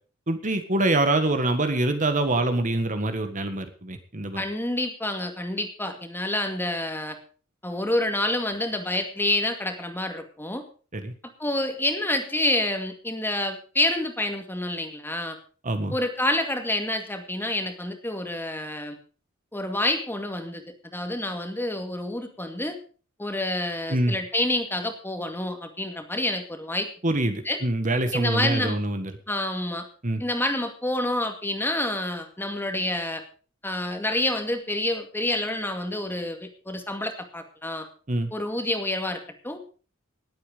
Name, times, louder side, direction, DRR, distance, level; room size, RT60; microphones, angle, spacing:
voice 1, 0.3-4.4 10.9-11.1 15.6-15.9 23.9-24.1 27.0-29.1 30.0-30.2 38.1-38.3, right 2 dB, 40° right, 8 dB, 1.6 m, -25 dB
voice 2, 4.4-7.2 7.6-10.6 11.4-15.4 15.9-19.0 19.5-22.8 23.2-26.9 27.5-27.6 28.1-28.8 29.3-29.9 30.2-33.2 33.6-37.9 38.3-39.6, left 1 dB, 10° left, 6 dB, 2.2 m, -28 dB
19.0 x 8.6 x 5.2 m, 0.38 s
head